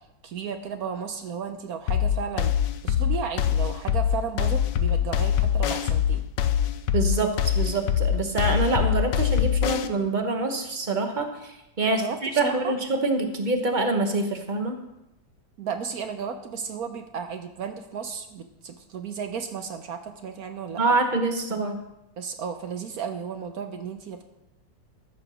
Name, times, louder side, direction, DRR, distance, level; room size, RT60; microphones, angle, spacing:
voice 1, 0.2-2.5 2.8-6.2 11.8-12.7 15.6-21.0 22.2-24.2, right 6 dB, 65° right, 7 dB, 1.1 m, -34 dB
sound 1, 1.9-9.9, left 10 dB, 90° left, 1.3 m, -23 dB
voice 2, 6.9-14.8 20.8-21.8, right 3 dB, 30° right, 5 dB, 1.0 m, -25 dB
14.0 x 4.9 x 6.2 m, 0.90 s
omnidirectional pair, 1.9 m